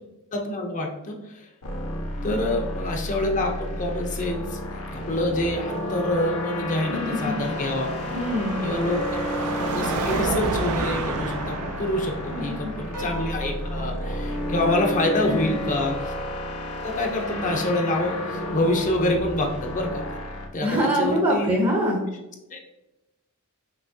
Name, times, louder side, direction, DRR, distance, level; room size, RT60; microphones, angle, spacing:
voice 1, 0.3-1.5 2.2-4.6 4.9-7.9 8.6-9.2 9.6-16.1 16.8-20.0 20.5-21.5 22.5-22.6, left 1 dB, 35° left, 2 dB, 0.6 m, -26 dB
sound 1, 1.6-20.5, left 1 dB, 70° left, 0.7 m, -32 dB
voice 2, 6.9-7.4 8.1-8.6 12.3-12.7 15.2-15.5 20.6-22.0, equal, 20° right, -1 dB, 0.6 m, -25 dB
Car passing by / Traffic noise roadway noise / Engine, 7.4-14.7, right 3 dB, 90° right, 0.5 m, -31 dB
sound 2, 12.9-15.5, right 1 dB, 70° right, 1.5 m, -42 dB
5.9 x 2.9 x 2.6 m, 0.99 s
head